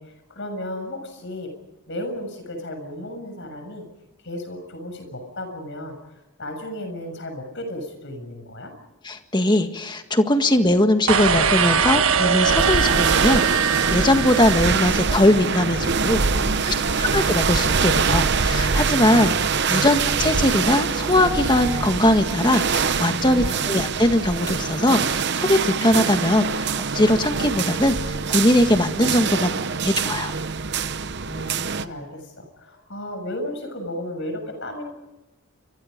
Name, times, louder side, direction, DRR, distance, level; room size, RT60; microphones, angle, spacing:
voice 1, 0.0-1.5 1.9-3.8 4.2-6.0 6.4-8.7 16.1-17.1 19.2-19.4 23.2-23.8 31.2-34.9, left 1 dB, 55° left, 6 dB, 7.1 m, -34 dB
voice 2, 9.0-16.2 16.7-19.3 19.7-30.3, left 1 dB, 20° left, 7 dB, 1.7 m, -20 dB
sound 1, 11.1-15.3, right 7 dB, 70° right, 1.4 m, -21 dB
sound 2, 12.4-31.8, right 5 dB, 50° right, 0.8 m, -24 dB
29.5 x 25.5 x 5.3 m, 0.98 s
head